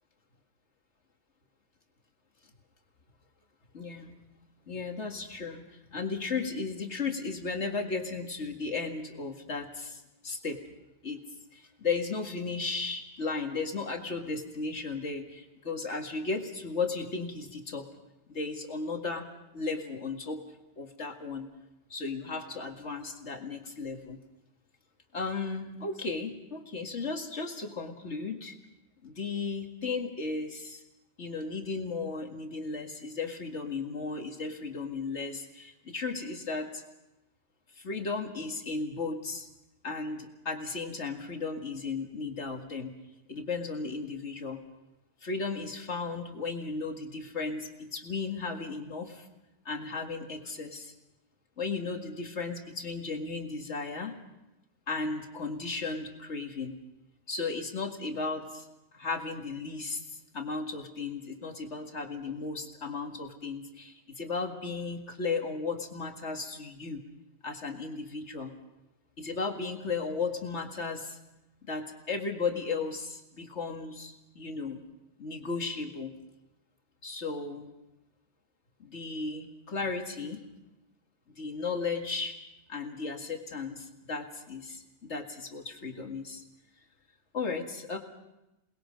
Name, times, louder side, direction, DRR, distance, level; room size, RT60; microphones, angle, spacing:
voice 1, 3.7-4.1 4.7-5.6 5.9-10.0 10.2-10.6 11.0-11.2 11.8-17.8 18.3-19.2 19.5-20.4 20.8-21.5 21.9-24.2 25.1-28.5 29.0-30.8 31.2-36.7 37.8-39.5 39.8-42.9 43.3-44.6 45.2-49.1 49.7-50.9 51.6-54.2 54.9-56.7 57.3-58.6 58.9-60.0 60.3-67.0 67.4-68.5 69.2-71.2 71.6-74.8 75.2-76.1 77.0-77.7 78.8-80.4 81.4-82.4 82.7-86.4 87.3-88.0, left 4 dB, 80° left, 3 dB, 2.3 m, -35 dB
28.5 x 20.5 x 5.2 m, 0.93 s
omnidirectional pair, 1.2 m